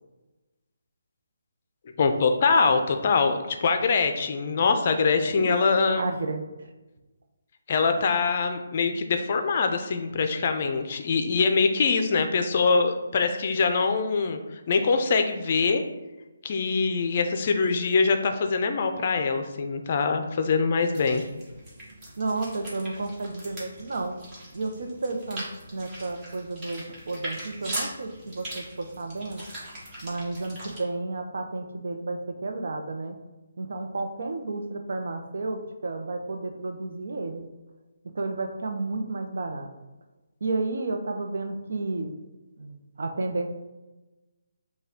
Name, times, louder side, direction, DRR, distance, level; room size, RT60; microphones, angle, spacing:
voice 1, 2.0-6.0 7.7-14.4 14.7-15.8 16.4-21.2, left 4 dB, 45° left, 6 dB, 0.4 m, -23 dB
voice 2, 6.0-6.4 22.2-24.1 24.5-25.4 25.7-29.4 30.0-33.2 33.6-37.5 38.1-39.7 40.4-42.1 42.6-43.5, right 3 dB, 65° right, 4 dB, 0.6 m, -32 dB
sound 1, 20.8-30.8, right 1 dB, 20° right, 1.3 m, -40 dB
5.4 x 2.3 x 3.5 m, 1.1 s
hypercardioid pair, 155°, 0 cm